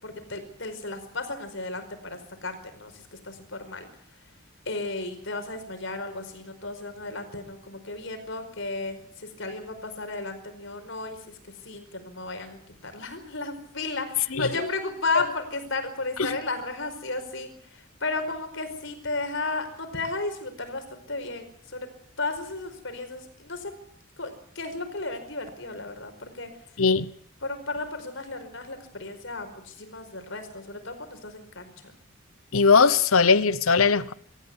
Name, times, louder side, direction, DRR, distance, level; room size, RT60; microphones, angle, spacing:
voice 1, 0.0-3.9 4.6-11.4 11.6-21.9 22.2-23.7 24.2-26.5 27.4-31.7, left 3 dB, 60° left, 5.0 m, -34 dB
voice 2, 14.3-14.7 15.2-15.3 16.2-16.4 26.8-27.1 32.5-34.1, left 5 dB, 80° left, 0.9 m, -20 dB
25.0 x 14.5 x 9.7 m
head